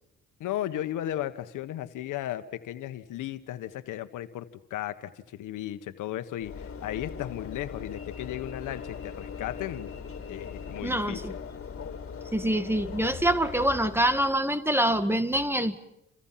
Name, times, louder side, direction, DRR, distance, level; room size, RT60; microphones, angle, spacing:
voice 1, 0.4-9.9 10.3-11.2, left 12 dB, 85° left, 1.5 m, -35 dB
Train / Engine / Alarm, 6.4-14.6, left 6 dB, 50° left, 4.1 m, -40 dB
voice 2, 10.8-11.3 12.3-15.8, right 1 dB, 10° right, 1.9 m, -25 dB
29.0 x 27.5 x 5.9 m
cardioid pair, 90°, 30 cm